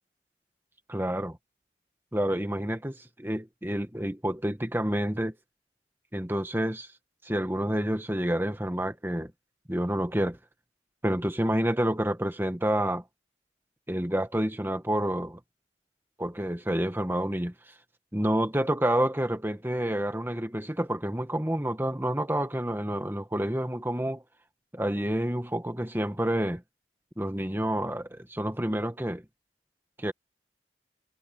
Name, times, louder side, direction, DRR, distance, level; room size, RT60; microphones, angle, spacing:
voice 1, 0.9-1.4 2.1-5.4 6.1-6.9 7.2-9.3 9.7-10.4 11.0-13.0 13.9-15.4 16.2-17.7 18.1-24.2 24.7-26.6 27.2-29.2 30.0-30.1, right 1 dB, 10° right, 1.5 m, -29 dB
head